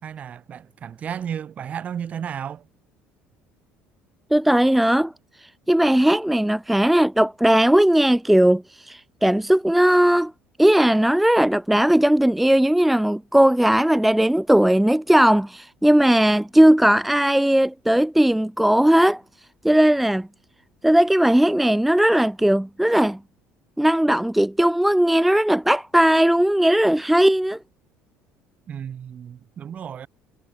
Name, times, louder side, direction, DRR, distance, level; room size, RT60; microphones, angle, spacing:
voice 1, 0.0-2.7 28.7-30.1, right 8 dB, 35° right, 4.2 m, -33 dB
voice 2, 4.3-5.1 5.4-10.3 10.6-19.2 19.6-20.3 20.8-23.2 23.8-27.6, right 1 dB, 5° right, 0.4 m, -18 dB
cardioid pair, 140°, 4 cm